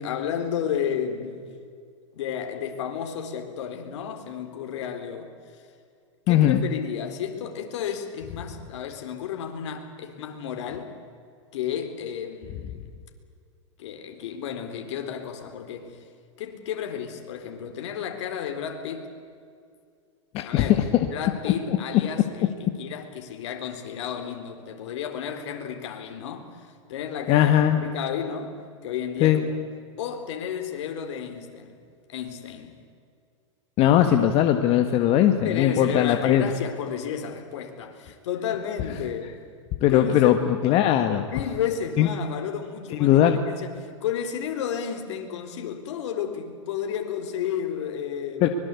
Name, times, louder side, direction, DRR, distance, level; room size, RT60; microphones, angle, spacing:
voice 1, 0.0-1.5 2.1-5.3 6.3-10.9 11.5-12.9 13.8-16.0 16.4-19.1 20.4-20.7 21.0-27.5 27.8-28.6 28.8-29.5 30.0-31.8 32.1-32.8 35.4-39.3 39.9-40.4 41.2-48.5, left 8 dB, 65° left, 5 dB, 3.9 m, -32 dB
voice 2, 6.3-6.6 20.3-20.7 21.7-21.8 27.3-27.8 29.2-29.4 33.8-36.5 39.8-41.3 42.0-42.1 43.0-43.4 48.4-48.5, left 11 dB, 40° left, 6 dB, 1.6 m, -19 dB
24.5 x 21.5 x 8.4 m, 2.2 s
hypercardioid pair, 125°, 16 cm